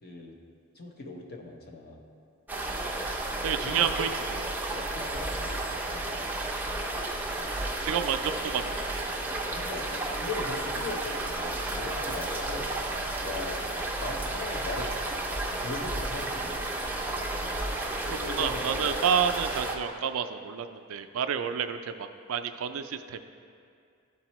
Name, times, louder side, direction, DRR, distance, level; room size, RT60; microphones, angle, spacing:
voice 1, 0.0-0.4 0.7-2.0 3.6-3.9 4.7-6.2 9.5-12.7 13.2-13.6 14.0-14.9 15.6-16.5 18.1-19.1, left 3 dB, 45° left, 0 dB, 0.8 m, -39 dB
sound 1, 2.5-19.8, right 2 dB, 10° right, 0.4 m, -32 dB
voice 2, 3.4-4.5 7.8-9.0 18.1-23.3, right 8 dB, 70° right, 8 dB, 0.3 m, -30 dB
12.0 x 4.1 x 3.0 m, 2.3 s
head